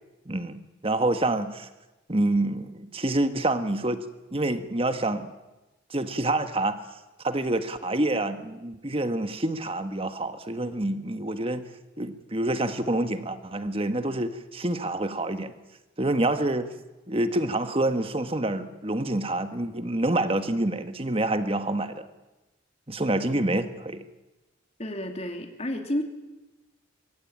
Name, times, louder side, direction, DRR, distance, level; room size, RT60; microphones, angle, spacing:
voice 1, 0.3-1.7 2.1-4.0 4.3-5.3 5.9-6.8 7.2-11.6 12.0-15.5 16.0-16.7 17.1-22.0 22.9-24.0, right 2 dB, 30° right, 10 dB, 1.5 m, -27 dB
voice 2, 24.8-26.0, left 1 dB, 35° left, 5 dB, 2.8 m, -30 dB
23.5 x 23.0 x 8.9 m, 1.1 s
head